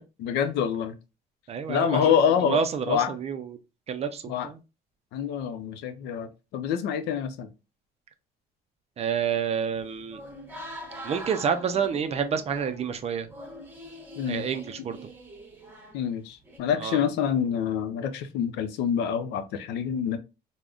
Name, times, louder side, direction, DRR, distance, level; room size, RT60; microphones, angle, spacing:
voice 1, 0.2-1.0 1.7-3.1 4.3-4.5 5.1-7.5 14.2-14.5 15.9-20.2, left 8 dB, 85° left, 0.5 m, -26 dB
voice 2, 1.5-2.2 2.5-3.5 3.9-4.6 9.0-10.2 11.0-13.3 14.3-15.0 16.8-17.0, right 7 dB, 40° right, 0.4 m, -28 dB
sound 1, 9.7-16.6, equal, 10° right, 0.9 m, -44 dB
3.5 x 2.1 x 2.3 m
cardioid pair, 110°, 17 cm